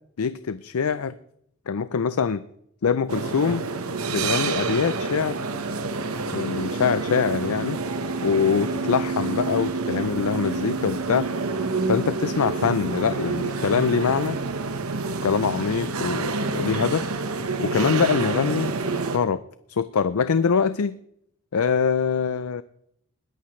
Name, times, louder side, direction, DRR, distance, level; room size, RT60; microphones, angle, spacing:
voice 1, 0.2-1.1 1.7-2.4 2.8-3.6 4.1-5.4 6.3-7.8 8.2-11.3 11.9-14.4 15.2-17.1 17.6-18.8 19.1-19.4 19.7-21.0 21.5-22.6, left 6 dB, 85° left, 14 dB, 0.5 m, -24 dB
sound 1, 3.1-19.2, right 3 dB, 80° right, 1.2 m, -28 dB
20.5 x 14.5 x 3.2 m, 0.73 s
head